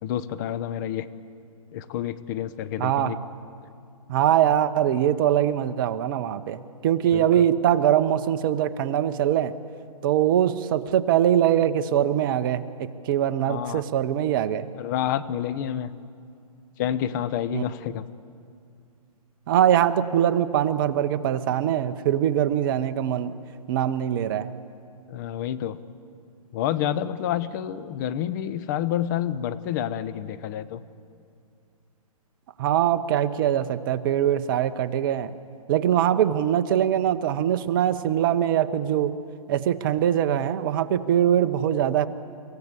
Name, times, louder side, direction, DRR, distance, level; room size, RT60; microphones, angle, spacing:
voice 1, 0.0-1.1 1.7-3.2 7.1-7.4 13.4-13.8 14.8-15.9 16.8-18.1 25.1-25.8 26.5-30.8, left 10 dB, 30° left, 15 dB, 0.8 m, -29 dB
voice 2, 2.8-3.1 4.1-9.5 10.0-14.7 17.5-17.6 19.5-23.3 23.7-24.5 32.6-35.3 35.7-39.1 39.5-42.1, right 10 dB, 35° right, 11 dB, 0.9 m, -22 dB
26.0 x 15.5 x 8.2 m, 2.4 s
hypercardioid pair, 140°, 20 cm